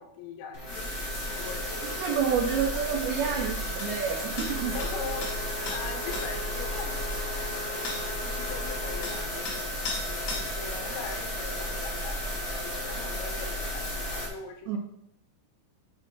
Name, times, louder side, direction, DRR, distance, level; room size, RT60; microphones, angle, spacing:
voice 1, 0.0-2.0 4.7-9.5 10.3-14.8, left 5 dB, 85° left, 5 dB, 3.5 m, -42 dB
sound 1, 0.5-14.3, equal, 30° left, 1.5 m, -33 dB
voice 2, 1.8-4.7 14.7-14.8, right 7 dB, 80° right, -1 dB, 2.2 m, -29 dB
sound 2, 3.8-3.9 4.4-4.5 4.8-4.9 5.2-5.3 5.7-5.8 6.1-6.3 7.9-8.0 9.0-9.2 9.5-9.6 9.9-10.0 10.3-10.5, left 3 dB, 65° left, 4.6 m, -35 dB
sound 3, 4.5-9.3, equal, 20° right, 3.3 m, -41 dB
7.6 x 7.3 x 4.6 m, 0.73 s
omnidirectional pair, 5.9 m